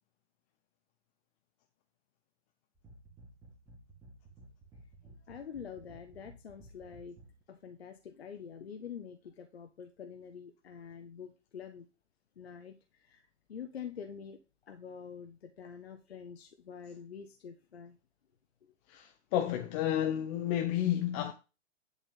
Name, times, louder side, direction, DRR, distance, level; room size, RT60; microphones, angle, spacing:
sound 1, 2.8-7.4, right 2 dB, 10° right, 2.1 m, -55 dB
voice 1, 5.0-7.2 7.5-11.9 12.4-18.0 18.6-18.7, left 7 dB, 60° left, 1.1 m, -46 dB
voice 2, 18.9-21.3, left 11 dB, 20° left, 0.7 m, -31 dB
11.0 x 4.1 x 5.5 m
figure-of-eight pair, 120°, 36 cm